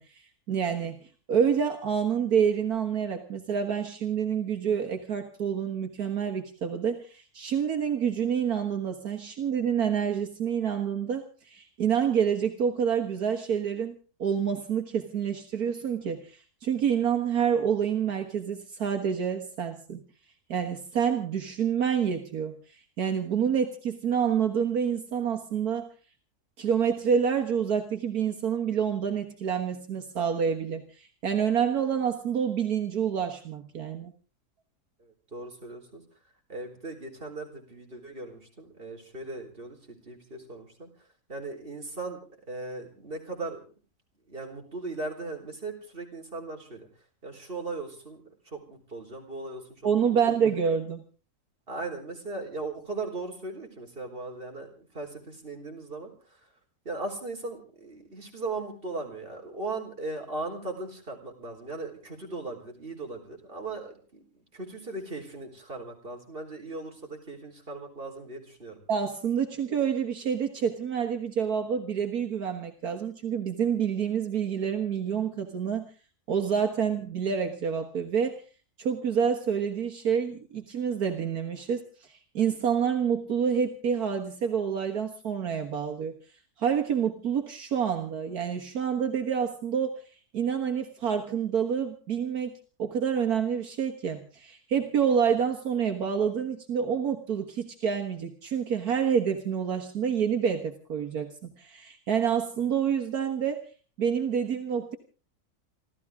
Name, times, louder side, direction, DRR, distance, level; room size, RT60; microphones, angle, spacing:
voice 1, 0.0-20.0 20.5-25.9 26.6-34.1 49.8-51.0 68.9-75.9 76.3-78.4 78.8-86.1 86.6-90.0 90.3-92.5 92.8-103.7 104.0-105.0, right 7 dB, 70° right, 4 dB, 2.0 m, -28 dB
voice 2, 35.0-36.0 36.5-40.9 41.3-42.2 42.5-43.6 44.3-46.9 47.2-50.2 51.7-56.5 56.8-64.2 64.5-68.8, right 3 dB, 35° right, 2 dB, 4.3 m, -38 dB
28.5 x 13.5 x 3.6 m, 0.36 s
omnidirectional pair, 1.6 m